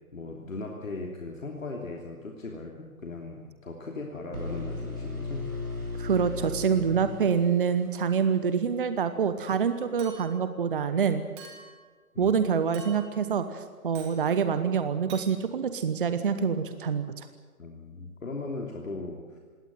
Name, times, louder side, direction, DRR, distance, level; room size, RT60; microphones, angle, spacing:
voice 1, 0.1-5.5 6.6-7.1 12.1-12.4 17.6-19.4, left 3 dB, 60° left, 1 dB, 3.1 m, -38 dB
sound 1, 4.3-8.2, left 3 dB, 80° right, 5.3 m, -36 dB
voice 2, 6.0-11.2 12.2-17.3, right 6 dB, 35° right, 11 dB, 1.1 m, -26 dB
Chink clink, 10.0-10.5 11.4-11.8 12.7-13.2 13.9-14.2 15.1-15.3, right 5 dB, 20° right, 3.0 m, -47 dB
20.5 x 17.5 x 9.4 m, 1.5 s
figure-of-eight pair, 145°, 44 cm